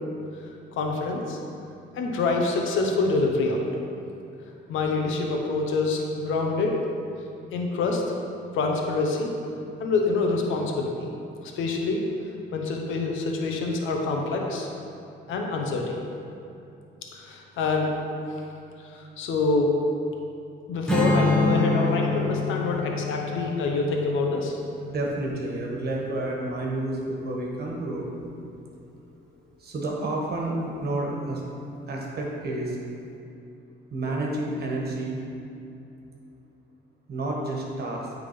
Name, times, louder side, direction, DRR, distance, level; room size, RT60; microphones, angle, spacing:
voice 1, 0.7-1.4 1.9-3.6 4.7-6.8 7.5-8.0 8.5-9.3 9.8-11.1 11.4-12.0 12.5-14.7 15.3-16.0 17.1-17.9 18.3-18.4 18.8-19.7 20.7-24.6, left 3 dB, 85° left, 1 dB, 0.9 m, -26 dB
Strum, 20.9-26.2, left 2 dB, 5° left, 1.3 m, -27 dB
voice 2, 24.9-28.1 29.6-31.4 31.9-32.8 33.9-35.2 37.1-38.1, right 2 dB, 55° right, -2 dB, 1.5 m, -30 dB
8.8 x 3.8 x 5.2 m, 2.7 s
cardioid pair, 90°, 20 cm